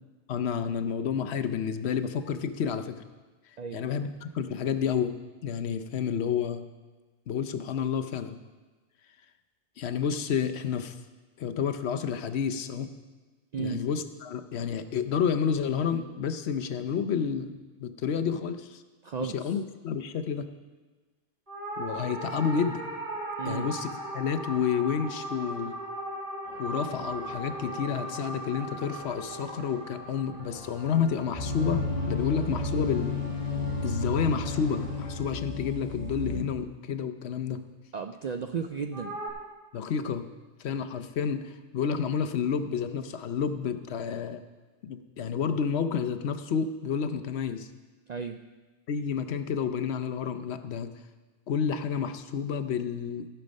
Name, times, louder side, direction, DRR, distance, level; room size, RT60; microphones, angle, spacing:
voice 1, 0.3-3.0 3.7-6.6 7.3-8.4 9.8-11.0 11.4-12.9 13.6-18.8 19.2-20.5 21.8-22.8 23.4-23.9 24.1-25.7 26.6-33.2 33.8-37.6 39.7-40.3 40.6-44.4 44.8-47.7 48.9-50.9 51.5-53.3, left 7 dB, 70° left, 9 dB, 0.9 m, -30 dB
voice 2, 13.5-13.9 19.0-19.5 23.4-23.7 37.9-39.2 48.1-48.4, right 6 dB, 60° right, 6 dB, 0.4 m, -34 dB
sound 1, 21.5-32.0 38.9-39.3, right 1 dB, 45° right, 2.3 m, -38 dB
sound 2, 26.4-35.2, right 1 dB, 15° right, 3.2 m, -48 dB
sound 3, 31.3-36.4, left 2 dB, 30° left, 3.2 m, -32 dB
15.5 x 6.8 x 5.3 m, 1.3 s
omnidirectional pair, 1.2 m